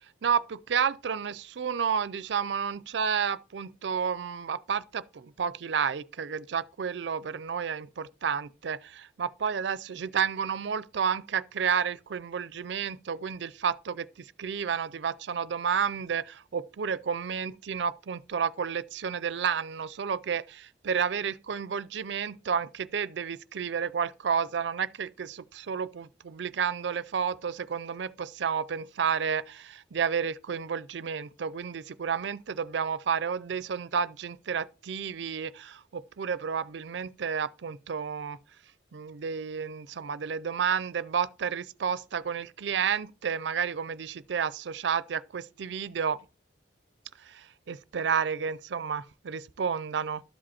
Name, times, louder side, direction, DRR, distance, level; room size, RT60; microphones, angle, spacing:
voice 1, 0.2-38.4 38.9-46.2 47.2-50.2, right 7 dB, 70° right, 0.4 m, -31 dB
12.5 x 5.1 x 4.2 m
head